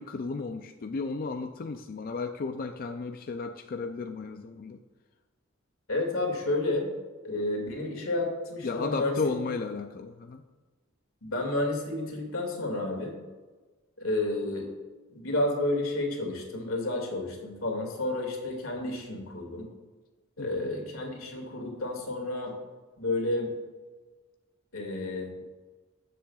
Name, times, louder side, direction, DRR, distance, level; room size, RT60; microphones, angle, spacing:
voice 1, 0.0-4.8 8.6-10.4 20.4-20.7, left 4 dB, 45° left, 6 dB, 0.4 m, -34 dB
voice 2, 5.9-6.9 7.2-9.2 11.2-13.2 14.0-14.7 15.1-19.7 20.4-22.5 23.0-23.5 24.7-25.3, left 2 dB, 85° left, 1 dB, 2.1 m, -31 dB
14.0 x 7.5 x 2.4 m, 1.3 s
head